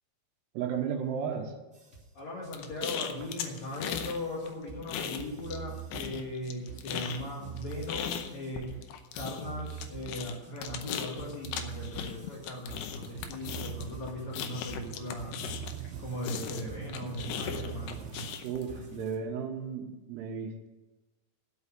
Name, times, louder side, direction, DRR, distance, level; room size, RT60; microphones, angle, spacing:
voice 1, 0.5-1.5 18.4-20.7, right 7 dB, 75° right, 3 dB, 2.9 m, -34 dB
sound 1, 1.7-19.1, right 8 dB, ahead, 1.9 m, -45 dB
voice 2, 2.1-8.7 9.1-15.4 16.0-18.2 18.9-19.1, left 1 dB, 50° left, -4 dB, 2.7 m, -38 dB
sound 2, 2.5-4.2 4.5-5.6 5.9-15.9 16.2-18.6, left 9 dB, 75° left, 2.5 m, -38 dB
sound 3, 13.0-18.4, right 10 dB, 90° right, 3.0 m, -44 dB
11.0 x 6.3 x 8.5 m, 1.1 s
omnidirectional pair, 5.2 m